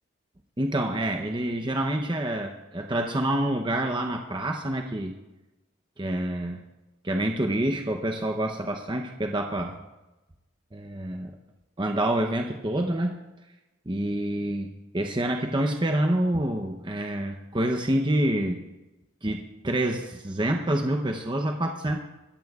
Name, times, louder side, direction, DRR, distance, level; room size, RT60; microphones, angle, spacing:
voice 1, 0.6-5.1 6.0-6.6 7.0-9.8 10.7-11.4 11.8-13.2 13.9-18.6 19.2-22.0, right 1 dB, 20° right, 3 dB, 0.8 m, -27 dB
23.5 x 14.5 x 2.4 m, 1.1 s
head